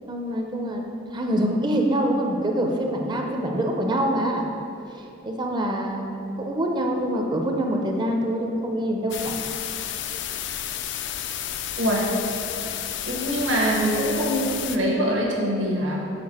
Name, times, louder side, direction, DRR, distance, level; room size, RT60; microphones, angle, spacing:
voice 1, 0.1-0.8 1.1-4.4 4.9-9.4, right 1 dB, 20° right, 2 dB, 0.5 m, -25 dB
sound 1, 9.1-14.8, left 10 dB, 60° left, 0.3 m, -31 dB
voice 2, 11.8-12.1 13.1-16.1, equal, 70° right, -2 dB, 1.2 m, -24 dB
6.7 x 4.4 x 4.2 m, 2.7 s
head